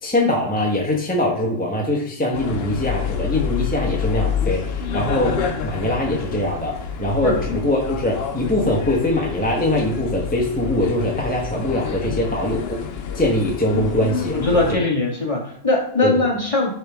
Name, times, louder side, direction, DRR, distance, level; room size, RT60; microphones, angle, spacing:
voice 1, 0.0-12.8 13.1-14.4 14.7-14.9 16.0-16.2, left 1 dB, 10° left, -2 dB, 1.0 m, -22 dB
sound 1, 2.3-14.8, left 7 dB, 60° left, 0.9 m, -28 dB
voice 2, 14.3-16.7, left 2 dB, 25° left, -2 dB, 1.5 m, -20 dB
10.5 x 3.7 x 3.5 m, 0.62 s
omnidirectional pair, 1.3 m